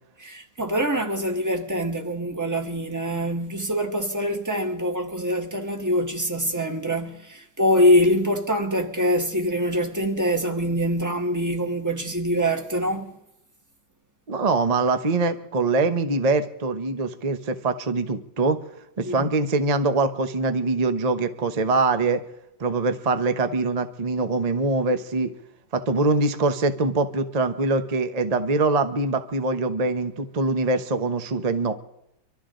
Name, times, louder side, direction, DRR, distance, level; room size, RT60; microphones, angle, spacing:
voice 1, 0.2-13.1 19.0-19.3, equal, 10° right, 1.1 m, -24 dB
voice 2, 14.3-18.6 19.0-22.2 22.6-25.3 25.7-31.7, right 3 dB, 40° right, 0.5 m, -23 dB
25.0 x 13.0 x 3.8 m
omnidirectional pair, 2.3 m